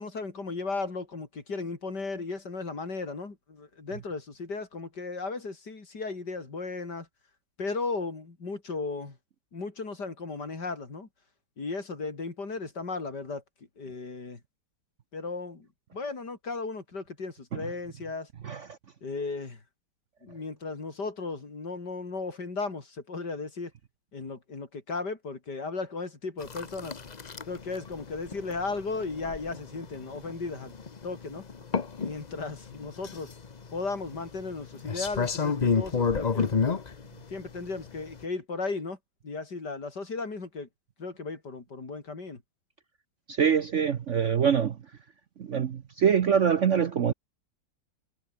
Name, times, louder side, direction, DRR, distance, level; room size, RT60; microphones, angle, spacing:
voice 1, 0.0-7.1 7.6-9.2 9.5-11.1 11.6-13.4 13.8-14.4 15.1-15.7 15.9-18.3 19.0-19.6 20.2-23.7 24.1-27.0 27.4-30.7 31.0-31.4 32.0-33.3 33.7-36.5 37.3-39.0 39.2-40.7 41.0-42.4, left 3 dB, 65° left, 4.4 m, -35 dB
sound 1, 26.4-38.2, left 5 dB, 30° left, 0.8 m, -32 dB
voice 2, 43.3-44.8 45.4-47.1, right 7 dB, 50° right, 1.0 m, -24 dB
omnidirectional pair, 2.0 m